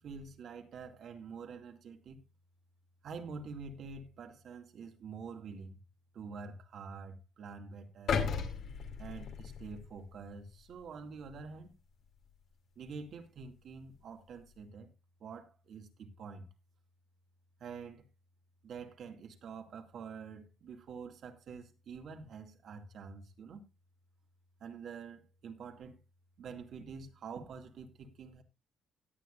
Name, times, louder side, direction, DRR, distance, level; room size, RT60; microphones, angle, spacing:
voice 1, 0.0-2.2 3.0-5.8 6.1-8.3 9.0-11.7 12.8-14.9 15.2-16.5 17.6-18.1 18.6-23.6 24.6-26.0 26.4-28.4, right 5 dB, 65° right, 2.3 m, -47 dB
sound 1, 8.1-10.2 10.7-10.9, left 6 dB, 70° left, 2.6 m, -35 dB
17.0 x 9.5 x 2.6 m
cardioid pair, 90°, 0 cm